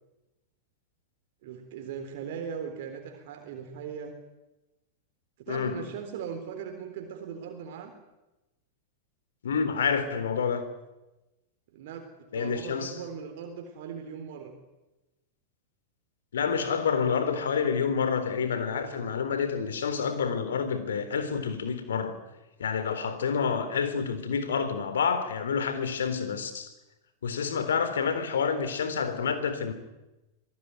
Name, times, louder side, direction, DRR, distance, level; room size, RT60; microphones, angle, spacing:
voice 1, 1.4-4.2 5.4-7.9 11.7-14.5, right 7 dB, 55° right, 3.7 m, -39 dB
voice 2, 5.5-5.8 9.4-10.7 12.3-12.9 16.3-22.2 22.6-26.7 27.2-29.7, left 6 dB, 65° left, 3.8 m, -28 dB
26.0 x 18.5 x 9.7 m
figure-of-eight pair, 95°, 0 cm